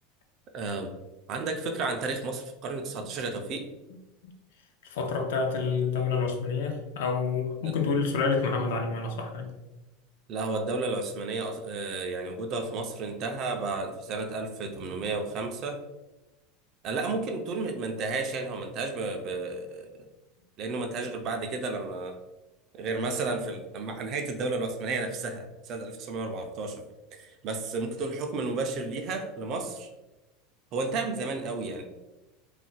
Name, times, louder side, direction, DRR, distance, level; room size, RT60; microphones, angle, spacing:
voice 1, 0.5-1.0 1.3-3.7 7.6-7.7 10.3-15.8 16.8-19.9 20.6-22.2 22.7-26.8 27.1-29.9 30.7-31.8, right 3 dB, 30° right, 5 dB, 0.3 m, -32 dB
voice 2, 4.8-9.5, left 5 dB, 80° left, 3 dB, 0.6 m, -28 dB
2.4 x 2.1 x 3.8 m, 1.0 s
supercardioid pair, 175°, 0 cm